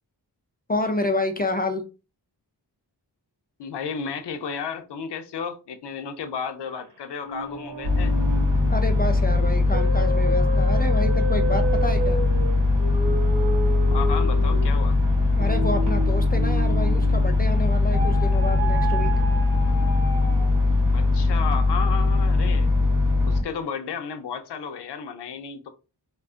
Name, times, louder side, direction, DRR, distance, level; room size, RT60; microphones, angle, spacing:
voice 1, 0.7-1.8 8.7-12.2 15.4-19.1, left 2 dB, 25° left, 0.3 m, -29 dB
voice 2, 3.6-8.1 13.9-15.0 20.9-22.7 23.3-25.7, left 6 dB, 75° left, 0.6 m, -33 dB
sound 1, 7.2-17.4 17.9-20.7, right 2 dB, 75° right, 0.9 m, -32 dB
sound 2, 7.8-23.4, left 3 dB, 50° right, 0.9 m, -21 dB
2.4 x 2.3 x 3.5 m
wide cardioid pair, 90°, 42 cm